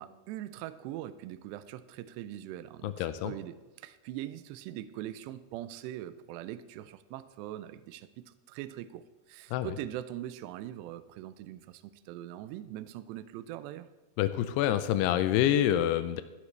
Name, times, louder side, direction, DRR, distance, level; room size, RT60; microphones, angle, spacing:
voice 1, 0.0-13.9, right 13 dB, 85° right, 12 dB, 2.6 m, -42 dB
voice 2, 2.8-3.3 9.5-9.8 14.2-16.2, left 11 dB, 90° left, 11 dB, 2.3 m, -27 dB
15.0 x 11.5 x 3.3 m, 1.2 s
omnidirectional pair, 5.3 m